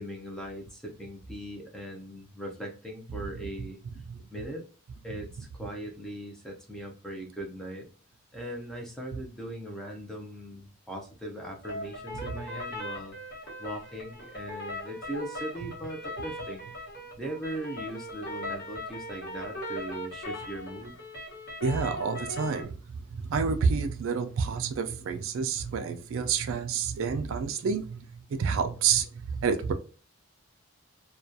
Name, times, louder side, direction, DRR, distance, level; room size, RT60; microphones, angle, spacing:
voice 1, 0.0-3.8 4.3-4.6 5.0-7.9 8.3-13.2 13.6-16.7 17.2-21.0, right 1 dB, ahead, 0.5 m, -39 dB
sound 1, 11.6-22.6, left 1 dB, 50° left, 0.9 m, -39 dB
voice 2, 21.6-29.7, right 6 dB, 65° right, 0.3 m, -29 dB
2.2 x 2.2 x 2.6 m
head